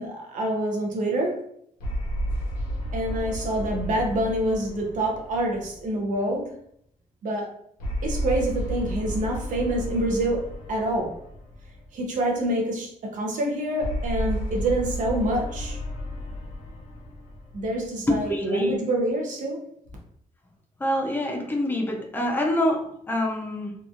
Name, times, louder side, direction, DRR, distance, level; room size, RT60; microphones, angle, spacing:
voice 1, 0.0-1.4 2.9-6.5 7.2-7.5 8.0-11.2 11.9-15.8 17.5-19.6, right 1 dB, 70° right, -1 dB, 0.5 m, -26 dB
sound 1, 1.8-6.4 7.8-12.2 13.8-18.4, equal, 90° left, 0.9 m, -32 dB
voice 2, 18.1-18.8 20.8-23.7, left 1 dB, 15° left, 1 dB, 0.4 m, -25 dB
2.8 x 2.3 x 2.4 m, 0.70 s
wide cardioid pair, 175°, 14 cm